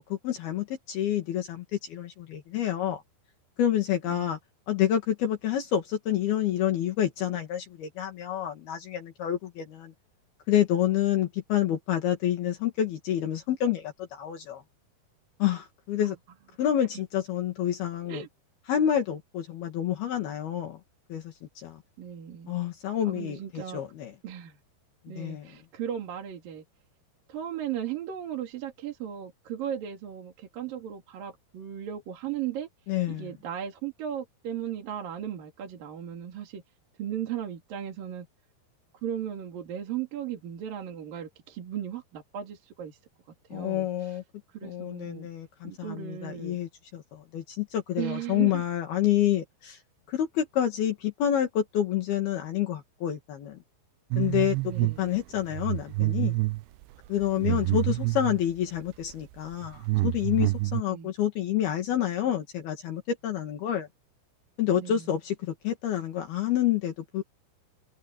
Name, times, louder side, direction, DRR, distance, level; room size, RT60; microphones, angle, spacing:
voice 1, 0.0-3.0 3.6-4.4 4.7-9.9 10.5-14.6 15.4-16.2 16.6-18.2 18.7-20.8 21.1-21.8 22.5-24.1 25.1-25.5 32.9-33.3 43.5-44.2 44.6-49.8 50.1-53.6 54.2-54.6 55.0-56.4 57.1-63.9 64.6-67.2, left 11 dB, 70° left, 4.0 m, -28 dB
voice 2, 22.0-22.6 23.0-23.8 24.2-24.6 25.1-26.6 27.3-32.7 33.1-36.6 37.0-38.3 39.0-43.0 43.5-44.2 44.5-45.3 45.6-46.6 48.0-48.6 54.7-55.1 57.4-57.8 60.9-61.1 64.8-65.1, right 10 dB, 60° right, 4.2 m, -36 dB
sound 1, 54.1-55.0 55.4-58.4 59.1-59.2 59.5-60.8, right 21 dB, 85° right, 2.7 m, -27 dB
omnidirectional pair, 4.7 m